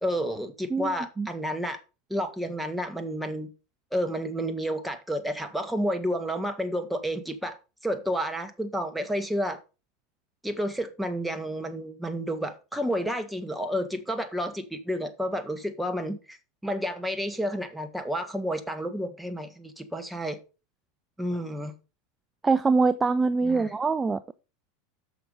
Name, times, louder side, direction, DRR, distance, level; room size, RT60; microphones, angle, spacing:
voice 1, 0.0-1.8 2.1-3.5 3.9-7.6 7.8-9.6 10.4-16.4 16.6-20.4 21.2-21.7 23.4-23.7, equal, 5° right, 1.5 m, -30 dB
voice 2, 0.7-1.3 22.4-24.3, right 4 dB, 20° right, 0.4 m, -24 dB
6.9 x 5.8 x 5.1 m
hypercardioid pair, 90°, 0 cm